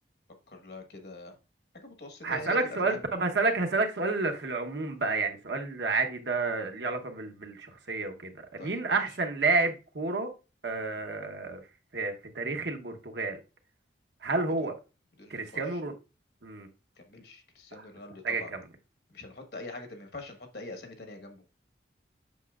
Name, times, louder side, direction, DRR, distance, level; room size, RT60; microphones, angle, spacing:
voice 1, 0.5-1.4 1.7-3.0 8.6-8.8 15.2-15.8 17.0-18.5 19.1-21.6, left 2 dB, 60° left, 5 dB, 1.3 m, -44 dB
voice 2, 2.2-10.3 10.6-11.6 11.9-13.4 14.2-14.8 15.3-15.9 16.4-16.7 17.7-17.9 18.2-18.6, right 3 dB, 70° right, 4 dB, 1.0 m, -30 dB
8.2 x 6.1 x 2.4 m, 0.30 s
head